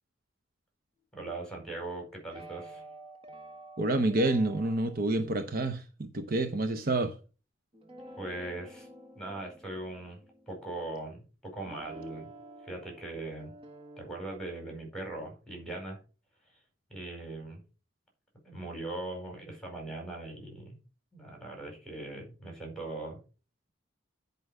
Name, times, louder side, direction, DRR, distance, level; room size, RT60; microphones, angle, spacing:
voice 1, 1.1-2.8 8.2-8.9 9.1-10.2 10.5-12.3 12.6-13.5 14.0-16.0 16.9-17.6 18.4-20.8 21.1-23.2, right 2 dB, 5° left, 4.8 m, -40 dB
sound 1, 2.3-5.0 7.7-11.2 11.7-14.4, right 1 dB, 30° right, 1.4 m, -50 dB
voice 2, 3.8-7.2, right 2 dB, 50° right, 0.8 m, -28 dB
10.0 x 5.4 x 4.8 m
head